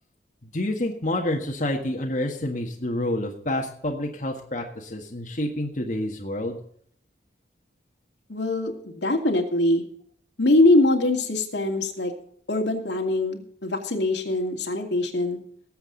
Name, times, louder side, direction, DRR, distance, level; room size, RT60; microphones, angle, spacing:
voice 1, 0.4-6.6, left 1 dB, 45° left, 1 dB, 1.6 m, -28 dB
voice 2, 8.3-9.8 10.4-12.1 12.5-15.4, left 2 dB, 85° left, 2 dB, 2.5 m, -23 dB
19.5 x 8.0 x 4.0 m, 0.63 s
head